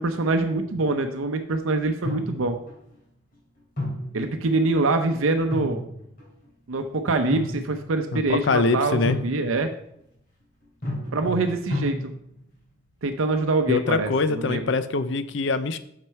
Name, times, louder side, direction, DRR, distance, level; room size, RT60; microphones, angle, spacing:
voice 1, 0.0-2.6 4.1-5.8 6.7-9.7 11.1-12.1 13.0-14.6, right 3 dB, 85° right, 7 dB, 0.6 m, -24 dB
sound 1, 0.6-1.1 2.0-2.8 3.8-4.9 5.3-6.5 7.1-8.0 9.0-9.7 10.8-12.4, left 1 dB, 45° left, 2.6 m, -32 dB
voice 2, 8.1-9.2 13.7-15.8, left 3 dB, 65° left, 12 dB, 0.5 m, -24 dB
6.2 x 5.9 x 4.6 m, 0.74 s
head